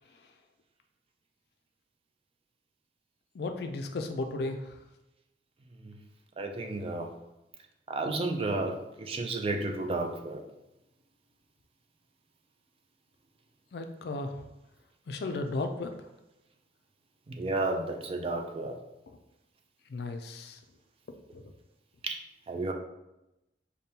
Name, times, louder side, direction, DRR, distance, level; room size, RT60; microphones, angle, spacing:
voice 1, 3.3-4.7 13.7-14.3 15.1-15.9 19.9-20.6 21.3-21.4, left 2 dB, 60° left, 6 dB, 0.4 m, -34 dB
voice 2, 6.4-7.1 7.9-10.4 17.3-18.8 22.0-22.2 22.5-22.7, right 2 dB, 30° right, 4 dB, 0.4 m, -32 dB
5.1 x 2.2 x 2.8 m, 0.93 s
head